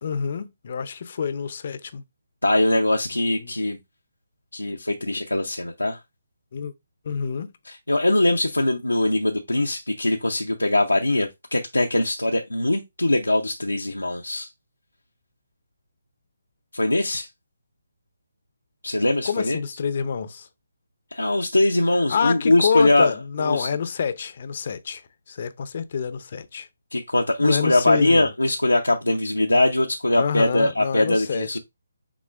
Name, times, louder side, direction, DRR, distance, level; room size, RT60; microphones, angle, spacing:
voice 1, 0.0-2.0 3.4-3.5 6.5-6.7 7.0-7.5 19.2-20.5 22.1-25.0 25.3-26.7 27.4-28.3 30.2-31.6, left 6 dB, 45° left, 0.6 m, -27 dB
voice 2, 2.4-3.8 4.5-6.0 7.7-14.5 16.7-17.3 18.8-19.6 21.1-23.1 23.4-23.7 26.9-31.6, left 1 dB, 90° left, 0.6 m, -22 dB
6.1 x 3.7 x 2.4 m
figure-of-eight pair, 145°, 0 cm